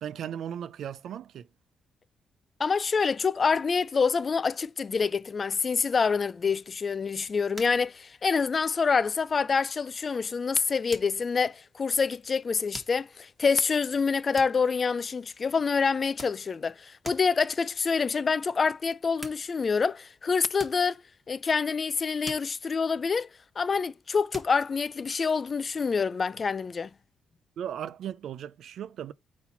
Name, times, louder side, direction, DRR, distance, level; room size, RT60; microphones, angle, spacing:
voice 1, 0.0-1.5 27.6-29.1, right 9 dB, 70° right, 0.4 m, -36 dB
voice 2, 2.6-21.0 21.3-23.3 23.6-26.9, left 5 dB, 35° left, 0.3 m, -26 dB
sound 1, 6.5-7.0 7.5-8.0 8.2-8.7 9.2-9.4 10.9-11.6 12.7-13.2 14.4-15.3 15.9-16.8 17.0-17.5 18.8-18.9 19.2-20.0 20.5-21.9 22.2-23.5 24.3-25.0, right 1 dB, 15° right, 1.3 m, -45 dB
4.2 x 4.1 x 5.6 m
cardioid pair, 130°, 0 cm